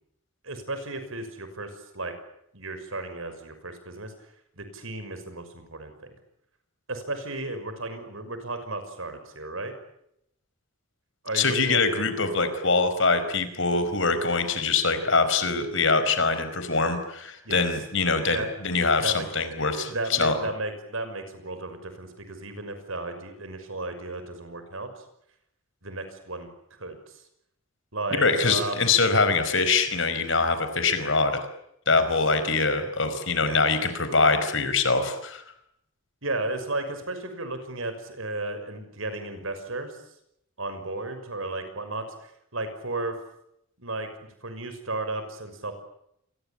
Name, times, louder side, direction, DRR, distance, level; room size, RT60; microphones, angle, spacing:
voice 1, 0.4-2.1 2.5-4.1 4.6-6.1 6.9-9.7 11.2-11.9 17.4-17.6 18.3-18.5 19.0-19.5 19.8-25.0 25.8-27.2 27.9-28.8 31.9-32.0 33.4-33.6 36.2-40.0 40.6-43.1 43.8-44.1 44.4-45.7, right 2 dB, 70° right, 9 dB, 6.1 m, -34 dB
voice 2, 11.3-20.3 28.1-31.4 31.9-35.4, left 4 dB, 60° left, 10 dB, 4.7 m, -23 dB
28.0 x 23.0 x 8.7 m, 0.76 s
head